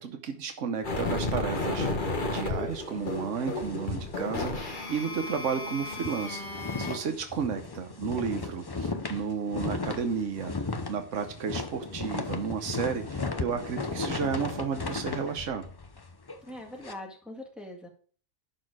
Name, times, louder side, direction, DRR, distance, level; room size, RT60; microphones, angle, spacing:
voice 1, 0.0-1.9 2.3-15.7, right 6 dB, 80° right, 6 dB, 1.3 m, -33 dB
sound 1, 0.8-7.0, left 2 dB, 45° left, 1.4 m, -33 dB
sound 2, 2.7-5.0 5.3-5.4 5.8-16.9, left 3 dB, 25° left, 0.6 m, -36 dB
voice 2, 16.4-17.9, left 1 dB, ahead, -1 dB, 1.9 m, -42 dB
11.5 x 4.3 x 4.8 m, 0.44 s
omnidirectional pair, 1.2 m